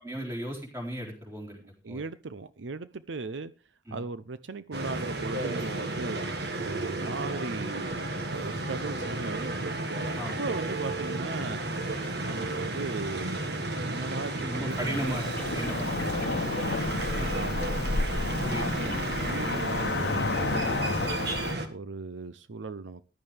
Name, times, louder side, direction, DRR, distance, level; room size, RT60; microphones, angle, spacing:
voice 1, 0.0-1.6 1.9-2.0 3.9-4.0 10.2-10.4 14.4-16.4 17.2-17.3 18.4-18.7, equal, 15° right, 4.0 m, -36 dB
voice 2, 1.8-3.5 3.9-6.2 6.6-7.9 8.3-11.6 12.2-15.2 17.3-18.0 18.6-19.0 19.2-21.0 21.7-23.0, right 3 dB, 85° right, 0.6 m, -38 dB
sound 1, 4.7-21.7, right 2 dB, 60° right, 1.8 m, -33 dB
sound 2, 13.9-19.6, left 3 dB, 10° left, 1.9 m, -49 dB
Cricket / Motor vehicle (road), 14.7-21.5, left 3 dB, 70° left, 0.9 m, -31 dB
14.5 x 11.0 x 3.4 m
head